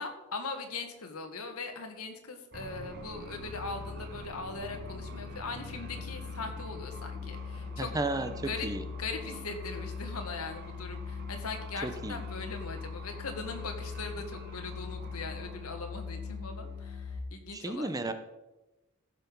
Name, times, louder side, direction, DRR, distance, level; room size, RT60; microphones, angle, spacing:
voice 1, 0.0-7.9 8.4-8.7 9.0-17.9, left 3 dB, 80° left, 5 dB, 1.9 m, -40 dB
sound 1, 2.5-17.2, left 4 dB, 45° right, 1.6 m, -41 dB
voice 2, 7.8-8.8 11.8-12.2 17.5-18.1, right 2 dB, 15° right, 9 dB, 0.7 m, -33 dB
15.0 x 7.0 x 5.4 m, 1.0 s
head